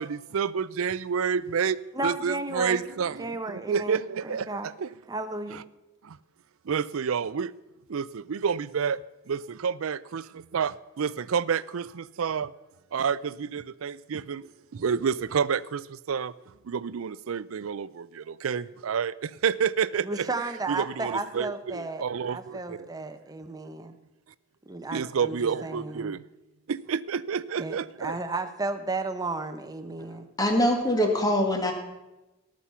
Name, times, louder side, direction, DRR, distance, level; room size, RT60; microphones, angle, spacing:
voice 1, 0.0-4.9 6.0-6.2 6.7-7.5 7.9-9.0 9.3-10.2 10.5-12.5 12.9-14.4 14.7-16.3 16.7-20.3 20.8-22.9 24.9-26.2 26.7-28.2, right 6 dB, 70° right, 0.4 m, -29 dB
voice 2, 1.9-2.9 3.2-4.7 5.1-5.6 20.0-24.0 24.7-26.1 27.6-30.3, right 2 dB, 15° right, 0.8 m, -34 dB
voice 3, 30.4-31.7, equal, 15° left, 1.8 m, -23 dB
19.0 x 6.3 x 5.6 m
head